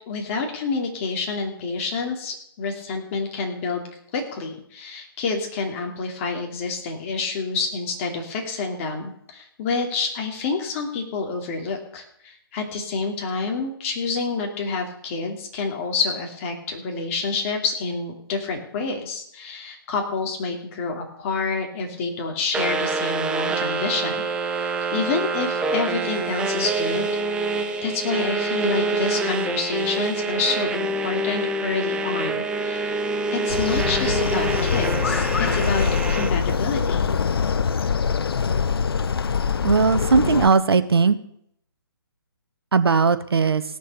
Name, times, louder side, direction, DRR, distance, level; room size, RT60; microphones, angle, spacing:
voice 1, 0.1-3.8 4.1-24.2 24.5-27.1 27.8-32.9 33.3-37.1, left 4 dB, 35° left, 2 dB, 2.7 m, -28 dB
sound 1, 22.5-36.3, right 3 dB, 5° right, 0.6 m, -26 dB
sound 2, 33.5-40.5, left 6 dB, 70° left, 0.7 m, -23 dB
voice 2, 39.6-41.2 42.7-43.6, right 5 dB, 80° right, 11 dB, 1.1 m, -18 dB
17.0 x 6.7 x 6.8 m, 0.71 s
hypercardioid pair, 145°, 13 cm